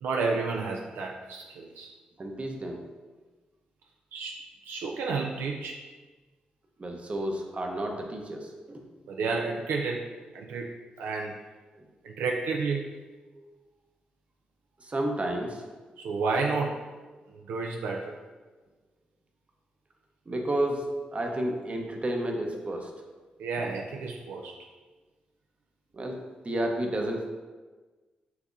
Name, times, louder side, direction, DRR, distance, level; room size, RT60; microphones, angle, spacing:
voice 1, 0.0-1.9 4.1-5.8 9.1-10.1 10.3-10.7 11.0-11.4 12.0-12.9 16.0-16.8 17.3-18.1 23.4-24.6, right 4 dB, 80° right, 0 dB, 0.3 m, -31 dB
voice 2, 2.2-2.8 6.8-8.8 11.8-11.9 13.4-13.5 14.8-15.7 20.3-22.9 25.9-26.2 26.4-27.2, right 1 dB, 35° right, 2 dB, 0.8 m, -31 dB
5.7 x 2.8 x 2.6 m, 1.3 s
supercardioid pair, 45°, 3 cm